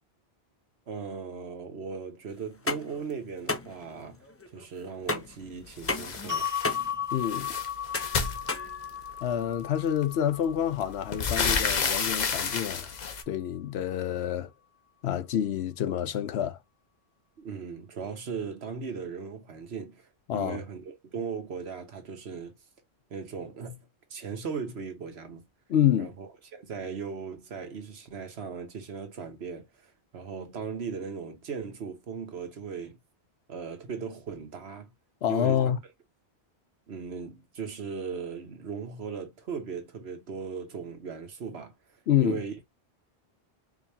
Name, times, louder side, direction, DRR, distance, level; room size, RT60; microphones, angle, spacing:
voice 1, 0.9-6.5 17.4-22.6 23.1-23.8 24.1-25.4 26.0-33.0 33.5-34.9 35.3-35.6 36.9-42.5, right 6 dB, 70° right, 1.3 m, -38 dB
sound 1, 2.4-9.4, left 3 dB, 25° left, 0.3 m, -35 dB
sound 2, 5.8-6.8 7.1-9.1 10.0-10.1 10.5-13.2, left 5 dB, 45° left, 0.8 m, -30 dB
sound 3, 6.3-12.5, left 9 dB, 15° right, 1.6 m, -36 dB
voice 2, 7.1-7.5 9.2-12.9 13.3-14.5 15.0-16.6 20.3-20.6 25.7-26.1 35.2-35.8 42.1-42.4, left 10 dB, 75° left, 0.9 m, -27 dB
4.9 x 2.9 x 2.7 m
omnidirectional pair, 1.1 m